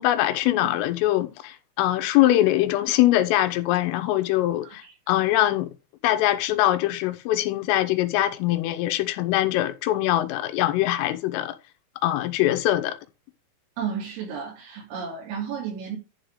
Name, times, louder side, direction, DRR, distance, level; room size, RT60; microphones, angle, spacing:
voice 1, 0.0-5.7 6.0-11.6 12.0-13.0, left 14 dB, 85° left, 3.6 m, -23 dB
voice 2, 13.8-16.0, right 7 dB, 85° right, 5.6 m, -32 dB
11.0 x 3.7 x 6.5 m
omnidirectional pair, 5.8 m